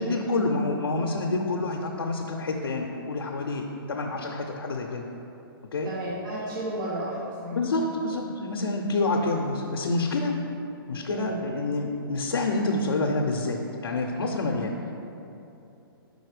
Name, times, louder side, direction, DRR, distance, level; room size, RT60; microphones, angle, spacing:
voice 1, 0.0-5.1 5.7-5.9 7.5-10.4 10.9-14.7, left 2 dB, 85° left, 1 dB, 0.6 m, -28 dB
voice 2, 5.8-7.6 8.1-8.2 11.1-11.4, right 1 dB, 55° right, -4 dB, 0.9 m, -33 dB
5.3 x 4.1 x 4.8 m, 2.9 s
hypercardioid pair, 140°, 13 cm